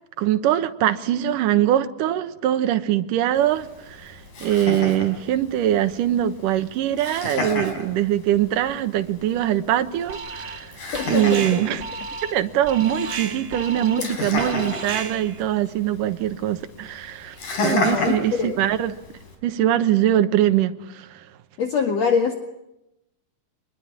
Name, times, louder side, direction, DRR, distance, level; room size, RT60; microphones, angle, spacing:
voice 1, 0.2-10.8 11.1-11.8 12.2-18.9 19.4-21.2, right 12 dB, 75° right, 2.7 m, -22 dB
Laughter, 3.4-19.4, left 2 dB, 80° left, 6.4 m, -33 dB
Alarm, 10.1-10.7 10.9-15.4, right 4 dB, 40° right, 2.5 m, -33 dB
voice 2, 10.9-11.6 13.7-14.1 17.7-18.6 21.6-22.3, left 6 dB, 55° left, 3.0 m, -24 dB
25.5 x 21.5 x 9.9 m
omnidirectional pair, 3.9 m